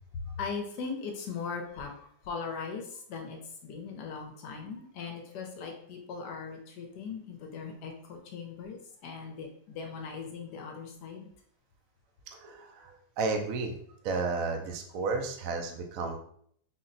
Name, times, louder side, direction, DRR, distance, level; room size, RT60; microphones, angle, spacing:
voice 1, 0.1-11.3, left 5 dB, 70° left, 2 dB, 1.1 m, -39 dB
voice 2, 13.2-13.7 14.0-16.2, right 4 dB, 75° right, 4 dB, 0.8 m, -32 dB
4.1 x 2.1 x 3.8 m, 0.64 s
omnidirectional pair, 2.0 m